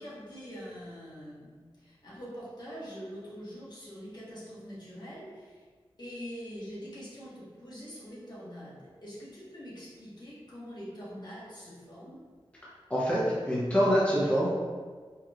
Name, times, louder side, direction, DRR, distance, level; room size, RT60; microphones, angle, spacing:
voice 1, 0.0-5.6 6.0-12.2, equal, 50° left, -8 dB, 1.3 m, -44 dB
voice 2, 12.9-14.5, equal, 15° left, -8 dB, 0.8 m, -25 dB
4.5 x 3.0 x 2.4 m, 1.5 s
wide cardioid pair, 80°, 10 cm